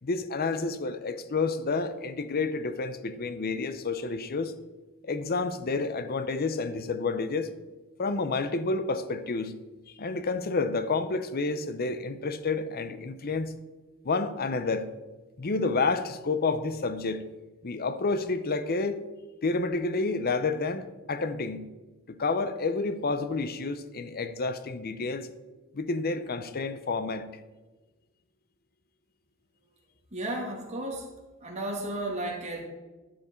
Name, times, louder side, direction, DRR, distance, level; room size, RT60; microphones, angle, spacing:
voice 1, 0.0-4.5 5.0-7.5 8.0-9.5 9.9-13.5 14.0-14.9 15.4-17.2 17.6-19.0 19.4-21.7 22.1-25.3 25.7-27.3, left 3 dB, 45° left, 0.7 m, -29 dB
voice 2, 30.1-31.1 31.4-32.6, right 1 dB, 35° right, 2.4 m, -33 dB
12.0 x 7.9 x 4.4 m
head